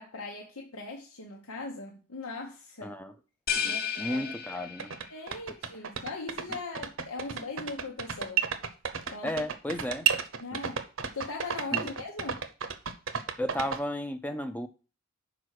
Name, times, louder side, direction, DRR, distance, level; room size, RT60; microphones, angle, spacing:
voice 1, 0.0-3.0 3.6-4.7 5.1-8.4 9.1-9.3 9.8-9.9 10.4-10.8 11.1-12.4, left 3 dB, 85° left, 1.1 m, -40 dB
voice 2, 2.8-3.1 3.6-4.9 9.2-10.1 10.5-10.6 11.7-11.9 13.4-14.7, equal, 5° left, 0.5 m, -34 dB
sound 1, 3.5-5.2, left 7 dB, 45° left, 1.3 m, -33 dB
sound 2, 4.5-4.6 4.8-13.8, right 7 dB, 65° right, 0.8 m, -31 dB
6.1 x 5.0 x 6.4 m
head